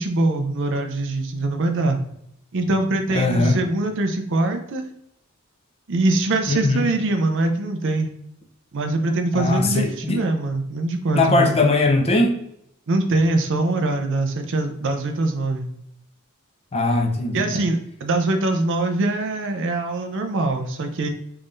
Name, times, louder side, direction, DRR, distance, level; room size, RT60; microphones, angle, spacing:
voice 1, 0.0-2.0 2.5-4.8 5.9-8.1 8.7-11.5 12.9-15.7 17.3-21.1, right 2 dB, 60° right, 6 dB, 0.5 m, -23 dB
voice 2, 3.1-3.6 6.5-6.8 9.3-10.2 11.1-12.4 16.7-17.5, left 2 dB, 30° left, 3 dB, 0.6 m, -20 dB
3.6 x 3.3 x 2.5 m, 0.75 s
head